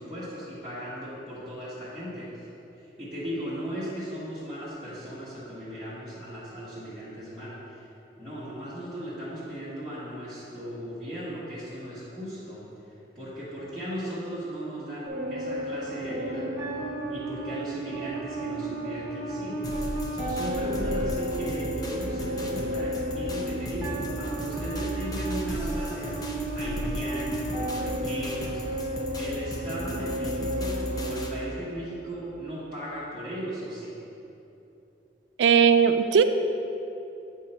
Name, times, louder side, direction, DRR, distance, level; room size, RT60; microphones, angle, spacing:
voice 1, 0.0-2.5 2.7-7.9 8.2-12.6 13.1-16.5 17.1-19.6 20.1-26.2 26.5-33.9, equal, 5° left, -14 dB, 1.4 m, -37 dB
sound 1, 15.1-32.1, right 1 dB, 15° right, 1.2 m, -33 dB
sound 2, 19.6-31.3, left 1 dB, 20° left, 0.5 m, -36 dB
voice 2, 35.4-36.2, right 7 dB, 85° right, 9 dB, 0.3 m, -18 dB
8.3 x 2.8 x 5.5 m, 2.9 s
head